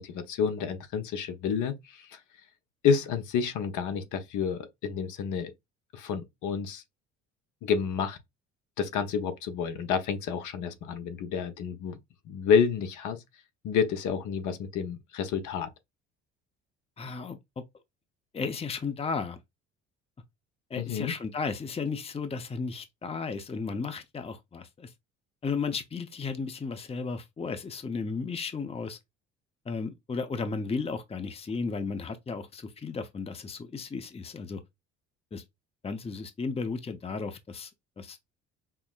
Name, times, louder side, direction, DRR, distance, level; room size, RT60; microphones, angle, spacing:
voice 1, 0.0-2.2 2.8-5.5 5.9-6.8 7.6-8.2 8.8-12.0 12.3-13.2 13.6-15.7 20.8-21.1, left 6 dB, 60° left, 0.8 m, -29 dB
voice 2, 17.0-17.4 18.3-19.4 20.7-24.9 25.4-29.0 29.7-34.6 35.3-35.4 35.8-37.7 38.0-38.2, left 4 dB, 20° left, 0.6 m, -34 dB
5.6 x 2.0 x 2.4 m
hypercardioid pair, 65°, 33 cm